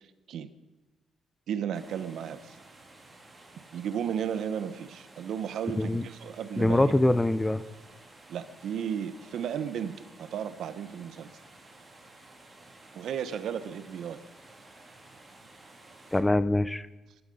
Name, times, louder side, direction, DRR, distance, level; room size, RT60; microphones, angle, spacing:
voice 1, 1.5-2.6 3.7-6.9 8.3-11.3 12.9-14.2, right 8 dB, 65° right, 12 dB, 1.0 m, -34 dB
sound 1, 1.7-16.2, right 2 dB, 15° right, 3.0 m, -53 dB
voice 2, 6.6-7.6 16.1-16.9, left 1 dB, 10° left, 15 dB, 0.5 m, -24 dB
21.0 x 11.5 x 5.4 m, 1.1 s
cardioid pair, 120°, 0 cm